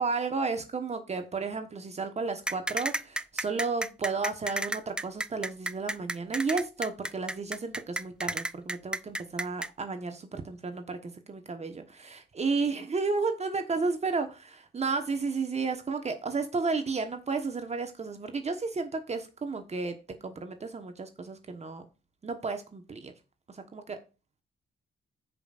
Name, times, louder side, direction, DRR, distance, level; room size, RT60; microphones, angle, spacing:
voice 1, 0.0-20.0 20.2-21.8 22.2-23.1 23.5-24.0, right 4 dB, 35° right, 7 dB, 1.2 m, -32 dB
sound 1, 2.5-9.7, right 1 dB, 5° right, 0.3 m, -32 dB
15.0 x 5.3 x 2.5 m, 0.31 s
cardioid pair, 90°, 20 cm